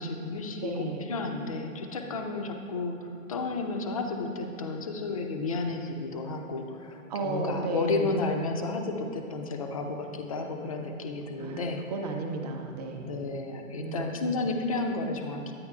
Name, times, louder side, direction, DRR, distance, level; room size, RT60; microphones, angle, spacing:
voice 1, 0.0-11.8 13.0-15.5, left 3 dB, 25° left, 4 dB, 0.4 m, -32 dB
voice 2, 0.6-1.0 7.1-8.2 11.4-13.3 13.8-14.1, right 3 dB, 30° right, 3 dB, 0.7 m, -34 dB
10.0 x 9.0 x 2.4 m, 2.6 s
figure-of-eight pair, 130°, 41 cm